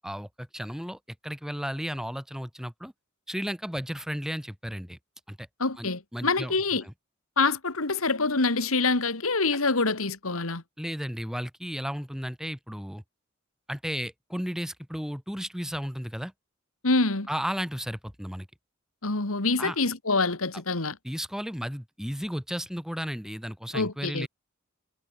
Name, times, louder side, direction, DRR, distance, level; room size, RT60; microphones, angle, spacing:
voice 1, 0.0-2.9 3.3-5.0 5.3-5.5 5.8-6.5 6.8-6.9 10.8-13.0 13.7-16.3 17.3-18.5 19.6-19.8 21.0-24.3, equal, ahead, 2.1 m, -34 dB
voice 2, 5.6-6.8 7.4-10.6 16.8-17.3 19.0-21.0 23.7-24.3, left 3 dB, 85° left, 2.4 m, -26 dB
head